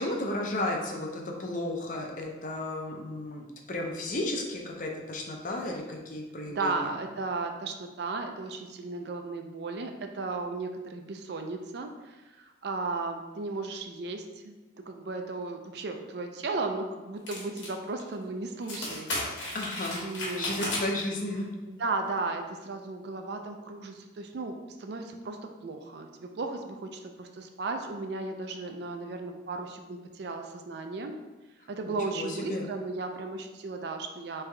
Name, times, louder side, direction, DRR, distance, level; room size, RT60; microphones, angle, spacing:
voice 1, 0.0-6.9 19.5-21.5 32.1-32.6, left 1 dB, 40° left, 1 dB, 0.5 m, -33 dB
voice 2, 6.5-19.6 20.0-20.9 21.7-31.1 31.7-34.4, right 3 dB, 55° right, 5 dB, 0.4 m, -35 dB
sound 1, 17.3-17.7 18.0-18.1 18.6-21.0, left 1 dB, 75° left, 1.3 m, -34 dB
3.5 x 3.4 x 3.2 m, 1.2 s
head